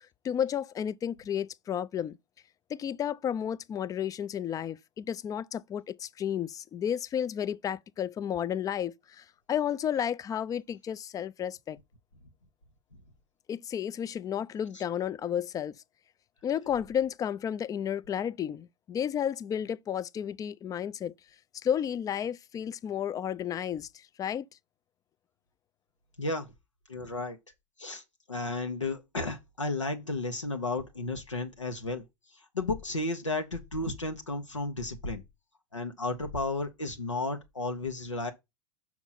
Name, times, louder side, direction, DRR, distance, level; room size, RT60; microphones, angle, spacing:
voice 1, 0.2-2.2 2.7-11.8 13.5-15.8 16.4-21.1 21.6-24.4, left 9 dB, 25° left, 0.4 m, -32 dB
voice 2, 26.2-26.5 26.9-27.4 27.8-28.0 28.3-32.0 32.3-35.2 35.7-38.3, left 2 dB, 90° left, 1.1 m, -33 dB
6.1 x 5.9 x 4.0 m
figure-of-eight pair, 90°, 15 cm